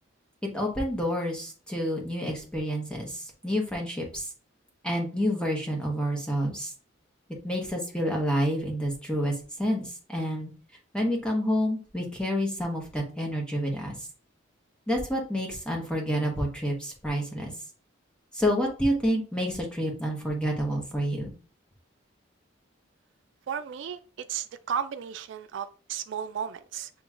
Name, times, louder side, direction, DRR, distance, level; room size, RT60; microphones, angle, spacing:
voice 1, 0.4-4.3 4.8-6.7 7.4-10.5 10.9-13.9 14.9-17.5 18.3-21.3, equal, 5° left, 1.0 m, -29 dB
voice 2, 23.5-24.0 24.3-26.9, right 8 dB, 65° right, 0.3 m, -34 dB
7.1 x 3.0 x 2.4 m
head